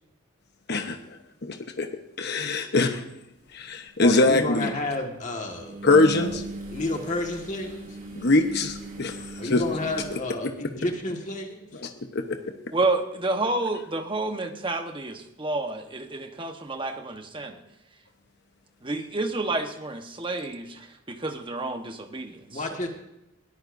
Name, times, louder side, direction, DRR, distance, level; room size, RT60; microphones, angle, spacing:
voice 1, 1.4-1.9 2.2-2.9 3.5-4.7 5.8-6.4 8.1-9.1 9.5-9.6 10.1-10.2 11.8-12.4, left 2 dB, 55° left, 5 dB, 1.0 m, -22 dB
sound 1, 3.6-3.7 5.6-10.2, right 1 dB, 45° right, 3.2 m, -39 dB
voice 2, 4.0-5.8 6.2-6.3 6.7-8.0 9.4-11.8 22.5-22.9, left 2 dB, 35° left, 2 dB, 1.8 m, -31 dB
voice 3, 12.7-17.6 18.8-20.6 21.1-22.3, right 2 dB, 25° right, 6 dB, 1.2 m, -29 dB
21.0 x 13.5 x 2.7 m, 0.88 s
head